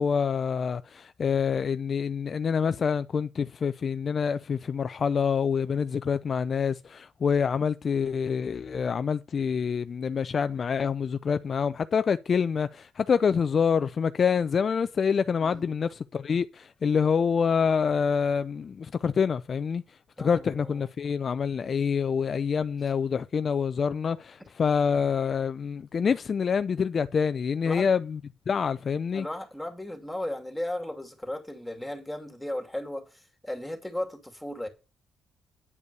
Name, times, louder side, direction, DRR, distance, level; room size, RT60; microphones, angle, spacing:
voice 1, 0.0-19.8 20.2-28.2 28.5-29.3, left 6 dB, 45° left, 0.5 m, -26 dB
voice 2, 20.2-20.9 27.6-27.9 29.1-34.7, left 1 dB, 5° left, 2.5 m, -36 dB
9.5 x 5.3 x 6.7 m
cardioid pair, 90°, 0 cm